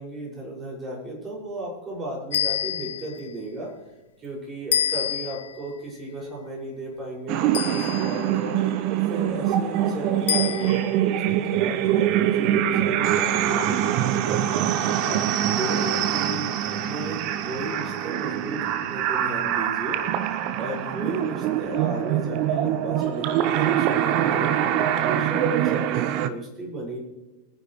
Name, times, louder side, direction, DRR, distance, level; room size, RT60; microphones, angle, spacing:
voice 1, 0.0-3.7 4.2-8.6 9.1-14.7 14.9-20.0 20.6-27.0, right 2 dB, 25° right, -3 dB, 6.0 m, -34 dB
sound 1, 2.3-3.2 4.7-5.6 7.5-8.3 10.3-11.0, left 10 dB, 60° left, 0.4 m, -27 dB
sound 2, 7.3-26.3, right 11 dB, 40° right, 0.9 m, -24 dB
23.0 x 10.0 x 3.2 m, 1.0 s
figure-of-eight pair, 90°, 0 cm